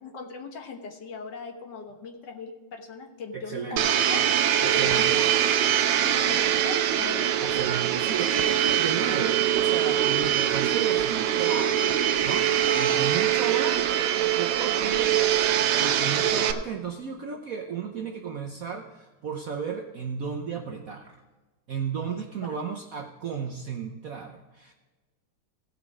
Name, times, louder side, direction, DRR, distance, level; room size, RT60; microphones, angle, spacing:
voice 1, 0.0-4.2 4.6-7.6 12.7-13.3 15.8-16.5, left 4 dB, 60° left, 4 dB, 1.7 m, -40 dB
voice 2, 3.3-3.9 4.6-5.2 7.4-11.9 12.2-15.3 15.8-21.2 21.7-24.7, right 6 dB, 60° right, 3 dB, 0.9 m, -34 dB
Domestic sounds home sounds, 3.8-16.5, right 10 dB, 85° right, 1.6 m, -23 dB
16.5 x 5.8 x 4.8 m, 1.2 s
omnidirectional pair, 2.3 m